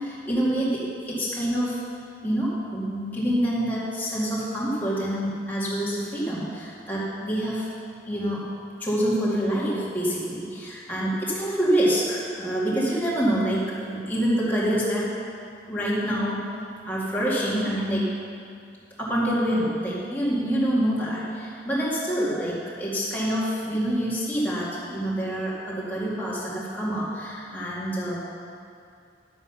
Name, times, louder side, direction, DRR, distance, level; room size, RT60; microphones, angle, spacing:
voice 1, 0.0-1.8 2.2-7.7 8.1-8.4 8.8-15.1 15.7-16.4 16.9-18.1 19.0-28.2, equal, 10° left, -8 dB, 2.2 m, -26 dB
11.0 x 8.0 x 5.6 m, 2.4 s
head